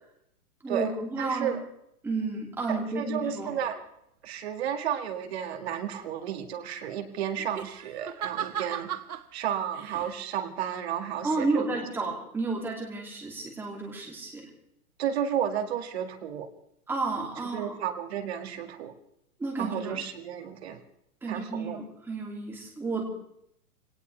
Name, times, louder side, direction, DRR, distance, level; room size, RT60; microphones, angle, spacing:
voice 1, 0.6-1.6 2.0-3.5 11.2-14.5 16.9-17.7 19.4-20.0 21.2-23.0, right 3 dB, 5° right, -1 dB, 2.7 m, -32 dB
voice 2, 1.2-1.6 2.7-3.8 4.2-8.9 9.3-11.7 15.0-16.5 17.5-18.9 19.6-20.8 21.3-21.8, right 9 dB, 45° right, 6 dB, 2.1 m, -32 dB
sound 1, 3.1-3.8 7.4-9.3 9.7-10.1, right 10 dB, 80° right, 1.6 m, -37 dB
23.0 x 18.5 x 3.4 m, 0.74 s
hypercardioid pair, 170°, 44 cm